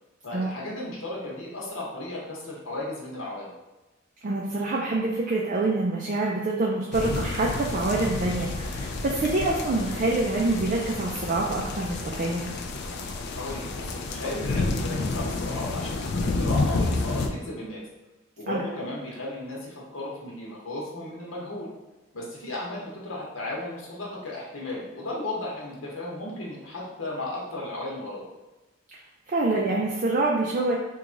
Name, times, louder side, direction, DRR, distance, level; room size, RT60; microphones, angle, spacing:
voice 1, 0.2-3.5 13.3-17.8 18.4-21.7 22.1-28.2, left 2 dB, 80° left, -4 dB, 1.0 m, -35 dB
voice 2, 4.2-12.5 18.5-18.6 29.3-30.8, right 2 dB, 40° right, -2 dB, 0.4 m, -26 dB
sound 1, 6.9-17.3, left 3 dB, 55° left, 0.3 m, -30 dB
3.0 x 2.3 x 3.8 m, 1.1 s
head